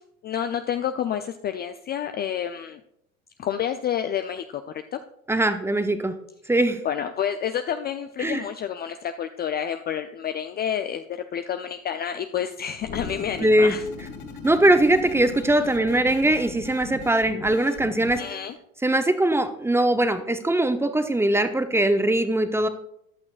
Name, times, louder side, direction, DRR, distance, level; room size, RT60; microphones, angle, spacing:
voice 1, 0.2-2.8 3.4-4.6 4.9-5.0 6.8-13.8 18.2-18.6, left 9 dB, 25° left, 8 dB, 0.5 m, -29 dB
voice 2, 5.3-6.1 6.5-6.8 8.2-8.4 13.4-13.8 14.4-18.2 18.8-22.7, right 1 dB, 5° right, 9 dB, 0.8 m, -21 dB
sound 1, 12.8-18.6, left 5 dB, 45° left, 2.4 m, -38 dB
14.5 x 10.5 x 2.5 m, 0.76 s
hypercardioid pair, 85°, 41 cm